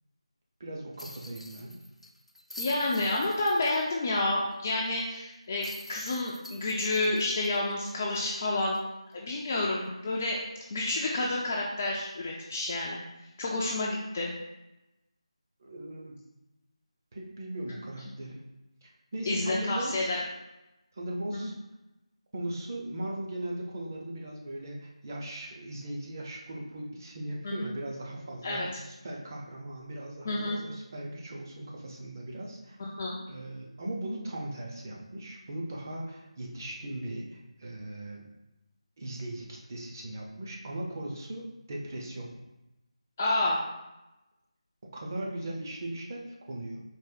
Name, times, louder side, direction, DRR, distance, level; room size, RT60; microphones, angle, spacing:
voice 1, 0.6-1.7 15.6-16.2 17.1-18.4 18.8-20.3 20.9-21.5 22.3-32.8 33.3-38.2 39.0-42.3 44.9-46.8, right 1 dB, 30° right, -1 dB, 0.7 m, -38 dB
sound 1, 1.0-4.2 4.5-4.6 5.6-8.3 8.7-8.8 11.0-11.2, left 1 dB, 75° left, 0.5 m, -46 dB
voice 2, 2.6-8.8 9.1-10.4 10.7-13.0 13.4-14.3 19.3-20.2 27.4-27.7 28.4-28.7 30.3-30.6 32.8-33.2 43.2-43.6, left 2 dB, 20° left, -3 dB, 0.3 m, -29 dB
4.2 x 2.6 x 3.8 m, 0.97 s
figure-of-eight pair, 165°, 3 cm